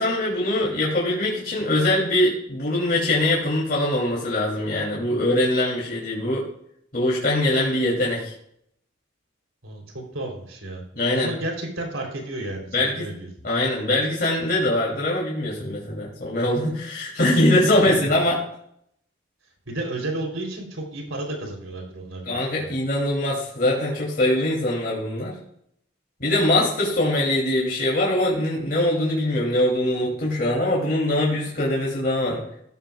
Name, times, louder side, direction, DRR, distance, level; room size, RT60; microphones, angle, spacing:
voice 1, 0.0-6.5 6.9-8.3 10.9-11.3 12.7-13.1 13.4-18.4 22.2-25.4 26.2-32.4, left 1 dB, 45° left, -4 dB, 2.9 m, -22 dB
voice 2, 9.6-10.8 11.1-13.3 17.8-18.1 19.7-22.9, right 2 dB, 90° right, 1 dB, 3.5 m, -32 dB
14.0 x 13.0 x 2.4 m, 0.70 s
head